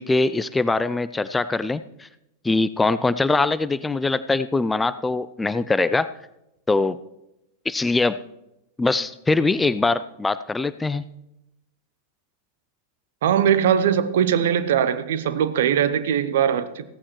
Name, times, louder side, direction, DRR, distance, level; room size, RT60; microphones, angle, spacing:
voice 1, 0.0-2.1 2.4-6.1 6.7-7.0 7.7-8.2 8.8-11.0, left 3 dB, 10° left, 0.4 m, -22 dB
voice 2, 13.2-16.8, right 9 dB, 60° right, 0.7 m, -20 dB
15.5 x 14.0 x 3.1 m
figure-of-eight pair, 90°, 0 cm